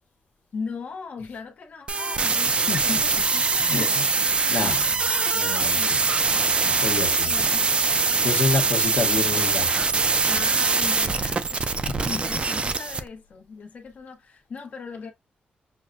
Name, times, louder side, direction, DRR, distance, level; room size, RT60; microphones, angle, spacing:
voice 1, 0.5-4.2 4.6-5.0 5.8-6.3 7.2-7.7 8.1-8.6 8.9-9.4 10.3-15.1, left 5 dB, 50° left, 0.9 m, -39 dB
sound 1, 1.9-13.0, right 4 dB, 35° right, 0.4 m, -23 dB
voice 2, 2.7-3.0 3.6-4.0 4.5-4.8 5.3-6.1 6.6-7.3 7.9-9.7, left 4 dB, 85° left, 1.1 m, -28 dB
6.2 x 2.2 x 2.5 m
wide cardioid pair, 135°, 3 cm